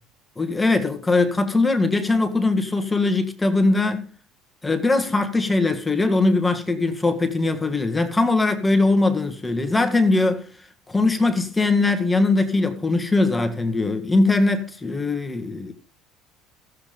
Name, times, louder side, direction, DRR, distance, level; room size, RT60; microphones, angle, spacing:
voice 1, 0.4-4.1 4.6-15.7, left 3 dB, 15° left, 1.6 m, -21 dB
14.0 x 7.6 x 5.2 m
supercardioid pair, 85°, 0 cm